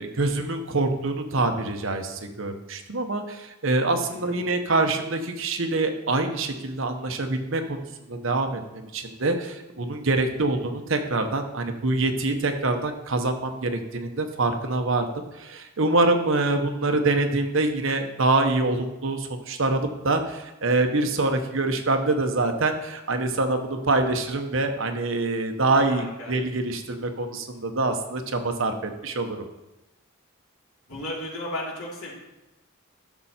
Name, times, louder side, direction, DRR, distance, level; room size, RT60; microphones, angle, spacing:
voice 1, 0.0-29.4, right 2 dB, 60° right, 6 dB, 1.0 m, -25 dB
voice 2, 4.0-4.4 25.9-26.3 30.9-32.1, left 1 dB, 70° left, -3 dB, 3.0 m, -34 dB
11.5 x 6.7 x 4.3 m, 1.0 s
head